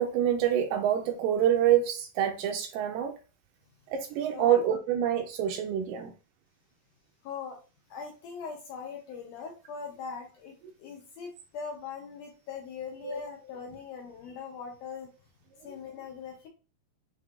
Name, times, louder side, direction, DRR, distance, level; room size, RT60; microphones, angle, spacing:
voice 1, 0.0-3.2 3.9-6.1 13.0-13.2, right 10 dB, 80° right, 2.0 m, -26 dB
voice 2, 7.2-7.6 7.9-10.5 10.8-15.1 15.6-16.5, left 6 dB, 75° left, 2.0 m, -41 dB
6.5 x 3.0 x 2.4 m
omnidirectional pair, 4.2 m